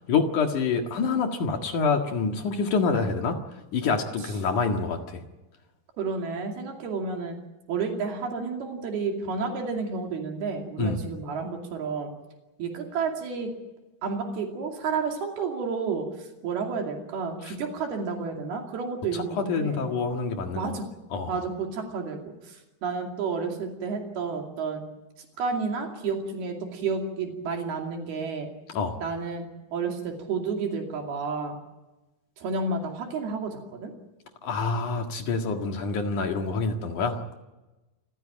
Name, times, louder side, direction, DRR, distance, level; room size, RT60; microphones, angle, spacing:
voice 1, 0.1-3.4 3.7-5.2 10.8-11.1 17.4-17.5 19.1-20.7 21.1-21.4 28.7-29.0 34.4-37.2, left 4 dB, 55° left, 4 dB, 3.0 m, -27 dB
voice 2, 6.0-7.3 7.7-12.1 12.6-13.5 14.0-16.1 16.4-19.9 20.5-20.9 21.3-22.6 22.8-24.8 25.4-28.5 29.0-29.4 29.7-31.6 32.4-33.9, right 4 dB, 75° right, 2 dB, 4.5 m, -31 dB
27.5 x 15.5 x 8.7 m, 1.1 s
omnidirectional pair, 4.5 m